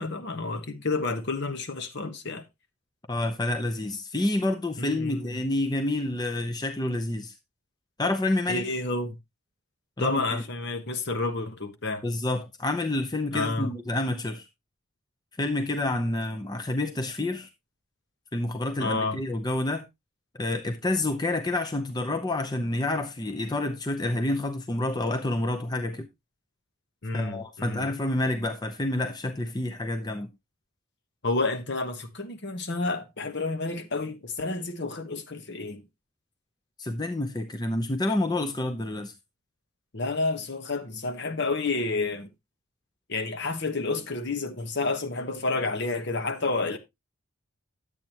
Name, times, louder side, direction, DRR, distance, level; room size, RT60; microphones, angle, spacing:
voice 1, 0.0-2.4 4.8-5.3 8.5-9.2 10.0-12.0 13.3-13.7 18.8-19.2 27.0-27.9 31.2-35.8 39.9-42.3 43.1-46.8, left 3 dB, 50° left, 1.2 m, -30 dB
voice 2, 3.1-7.3 8.0-8.7 10.0-10.4 12.0-14.5 15.4-17.5 18.3-19.8 20.3-26.1 27.1-30.3 36.8-39.1, left 2 dB, 20° left, 0.7 m, -28 dB
10.5 x 8.4 x 2.9 m
head